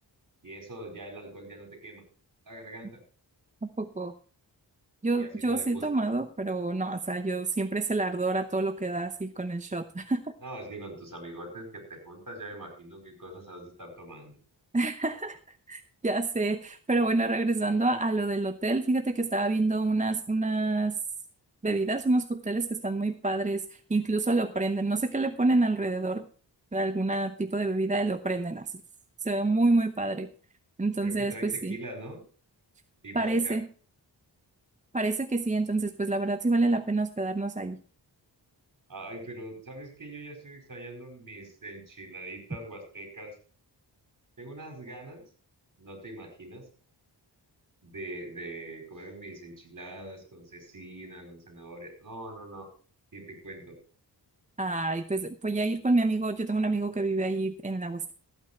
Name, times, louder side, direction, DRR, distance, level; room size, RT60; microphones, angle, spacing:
voice 1, 0.4-2.0 2.4-3.0 5.2-6.0 10.4-14.4 31.0-32.2 33.0-33.6 38.9-43.4 44.4-45.2 45.8-46.6 47.8-52.7 53.1-53.8, right 1 dB, 45° right, 4 dB, 4.8 m, -43 dB
voice 2, 3.6-4.1 5.0-10.3 14.7-20.9 21.6-26.3 26.7-28.8 29.2-30.3 30.8-31.8 33.1-33.7 34.9-37.8 54.6-58.1, right 2 dB, 15° right, 9 dB, 0.7 m, -28 dB
14.5 x 8.9 x 4.4 m, 0.39 s
wide cardioid pair, 75°, 43 cm